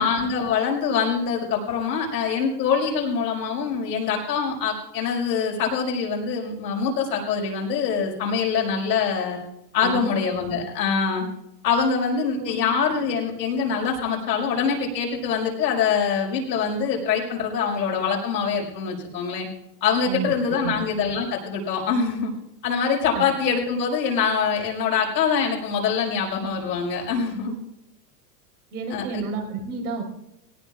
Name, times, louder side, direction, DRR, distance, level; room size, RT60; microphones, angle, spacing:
voice 1, 0.0-9.4 9.7-11.3 11.6-19.5 19.8-22.3 22.6-27.6 28.9-29.2, left 6 dB, 90° left, -1 dB, 5.5 m, -24 dB
voice 2, 9.8-10.1 12.4-12.6 20.0-20.3 20.6-20.8 23.1-23.3 28.7-30.0, right 4 dB, 60° right, 2 dB, 4.5 m, -30 dB
18.5 x 18.0 x 2.4 m, 0.82 s
supercardioid pair, 175°, 50 cm